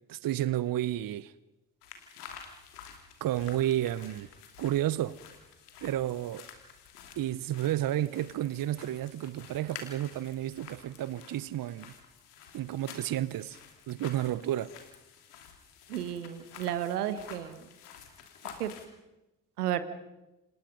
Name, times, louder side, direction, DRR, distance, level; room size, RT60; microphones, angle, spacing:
voice 1, 0.0-1.3 3.2-4.3 4.6-5.2 5.8-6.5 7.2-11.9 12.5-14.7, right 13 dB, 50° right, 0.9 m, -31 dB
sound 1, 1.8-18.9, left 7 dB, 80° left, 2.9 m, -50 dB
voice 2, 15.9-17.7 18.6-18.7 19.6-19.8, right 11 dB, 85° right, 1.5 m, -32 dB
30.0 x 27.0 x 5.4 m
figure-of-eight pair, 45°, 45 cm